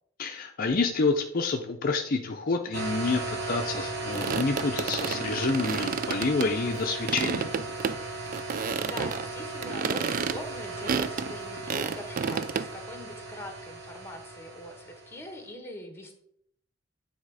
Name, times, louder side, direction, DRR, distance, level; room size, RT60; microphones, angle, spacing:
voice 1, 0.2-7.5, left 3 dB, 45° left, 4 dB, 0.6 m, -28 dB
sound 1, 2.7-15.3, right 2 dB, 65° right, 1.2 m, -37 dB
sound 2, 4.1-6.8 7.1-8.0 8.3-9.3 9.6-12.7, right 6 dB, 45° right, 0.4 m, -31 dB
voice 2, 8.8-16.1, left 1 dB, 10° left, 4 dB, 1.3 m, -42 dB
9.6 x 3.6 x 4.8 m, 0.70 s
head